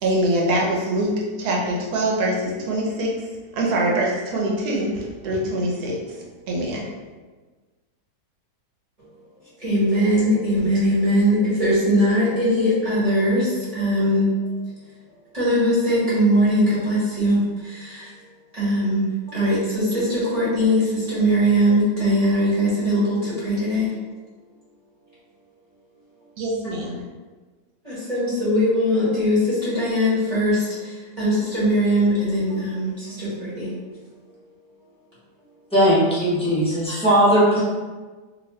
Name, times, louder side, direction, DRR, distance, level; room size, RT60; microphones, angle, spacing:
voice 1, 0.0-3.2 3.5-6.0 6.5-6.8 26.4-27.0, right 1 dB, 90° right, -2 dB, 1.3 m, -23 dB
voice 2, 9.6-14.6 15.3-18.1 18.5-23.9 27.8-33.7, equal, 25° right, -11 dB, 1.4 m, -21 dB
voice 3, 35.7-37.6, equal, 5° left, -9 dB, 0.7 m, -18 dB
2.9 x 2.6 x 3.1 m, 1.3 s
omnidirectional pair, 1.6 m